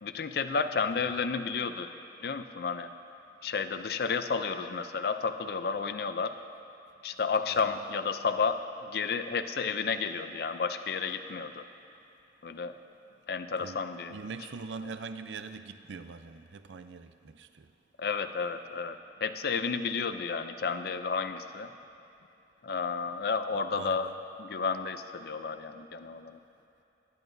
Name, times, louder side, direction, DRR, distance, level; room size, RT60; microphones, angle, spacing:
voice 1, 0.0-1.9 2.2-2.9 3.4-6.3 7.0-11.6 12.4-12.7 13.3-14.2 18.0-21.7 22.6-24.1 24.4-26.4, left 5 dB, 60° left, 0.4 m, -32 dB
voice 2, 14.1-17.7 23.7-24.2, right 4 dB, 90° right, 0.5 m, -43 dB
21.0 x 11.0 x 2.7 m
head